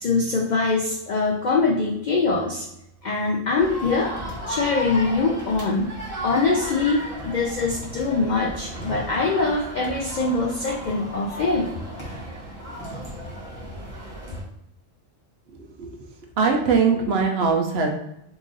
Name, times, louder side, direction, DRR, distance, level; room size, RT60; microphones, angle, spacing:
voice 1, 0.0-2.7 3.0-4.1 4.5-6.0 6.2-11.7, left 3 dB, 70° left, -1 dB, 0.4 m, -23 dB
sound 1, 3.6-14.4, equal, 25° left, 1.1 m, -35 dB
voice 2, 15.5-15.9 16.4-17.9, right 5 dB, 65° right, 2 dB, 0.7 m, -21 dB
3.0 x 2.5 x 3.7 m, 0.81 s
omnidirectional pair, 1.3 m